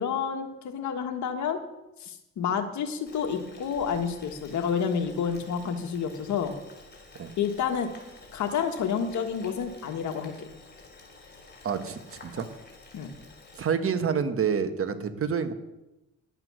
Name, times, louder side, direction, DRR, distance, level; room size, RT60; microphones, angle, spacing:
voice 1, 0.0-1.6 2.0-6.6 7.4-7.9 8.3-10.3 12.9-13.1, left 7 dB, 70° left, 5 dB, 1.6 m, -29 dB
Boiling, 3.1-13.7, left 3 dB, 35° left, 3.8 m, -50 dB
voice 2, 11.6-12.5 13.6-15.5, right 6 dB, 45° right, 9 dB, 1.3 m, -28 dB
11.5 x 8.0 x 6.2 m, 0.97 s
cardioid pair, 90°, 30 cm